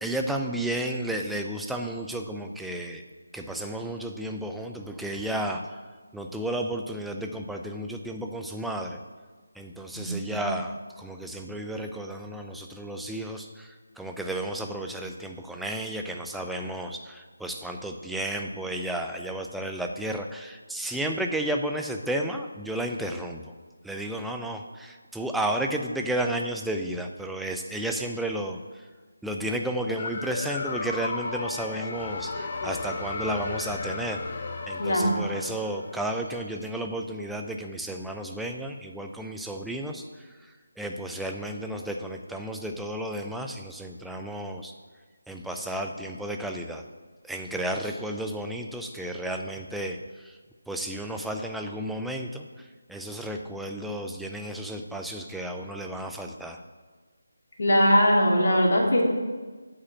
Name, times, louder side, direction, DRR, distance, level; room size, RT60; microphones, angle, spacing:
voice 1, 0.0-3.0 3.3-5.8 6.1-9.0 9.6-23.4 23.8-28.8 29.2-34.2 34.7-44.7 45.3-46.8 47.2-50.4 50.7-56.6, right 1 dB, ahead, 2 dB, 0.5 m, -32 dB
voice 2, 10.0-10.4 34.8-35.2 57.6-59.0, equal, 55° left, -1 dB, 2.3 m, -21 dB
sound 1, 30.0-36.6, left 3 dB, 35° left, 0.9 m, -34 dB
8.1 x 5.1 x 7.5 m, 1.4 s
figure-of-eight pair, 155°, 0 cm